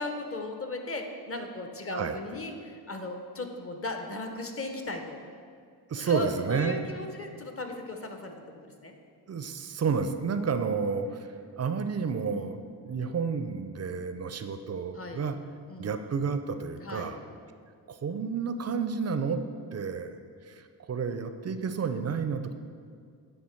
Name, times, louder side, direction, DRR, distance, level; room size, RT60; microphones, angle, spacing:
voice 1, 0.0-5.2 6.0-8.9 10.4-10.9 12.3-12.6 14.9-15.2 15.7-15.9 16.8-17.2, left 2 dB, 30° left, 4 dB, 0.8 m, -37 dB
voice 2, 5.9-6.9 9.3-11.1 11.6-15.4 15.8-17.2 17.9-19.4 19.7-20.2 20.5-20.6 20.9-22.5, right 5 dB, 35° right, 9 dB, 0.5 m, -30 dB
9.0 x 3.3 x 4.4 m, 2.2 s
cardioid pair, 55°, 44 cm